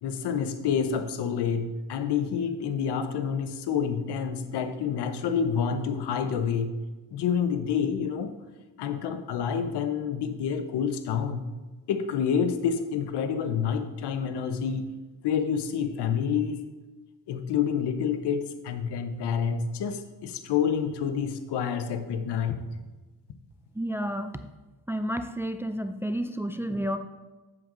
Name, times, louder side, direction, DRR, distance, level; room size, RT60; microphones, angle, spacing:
voice 1, 0.0-6.7 7.1-8.3 8.8-11.4 11.9-14.9 15.2-16.6 17.3-22.6, left 7 dB, 85° left, 9 dB, 0.9 m, -28 dB
voice 2, 23.8-24.4 24.9-27.0, equal, 5° right, 8 dB, 0.3 m, -30 dB
7.7 x 7.6 x 3.8 m, 1.2 s
cardioid pair, 105°, 39 cm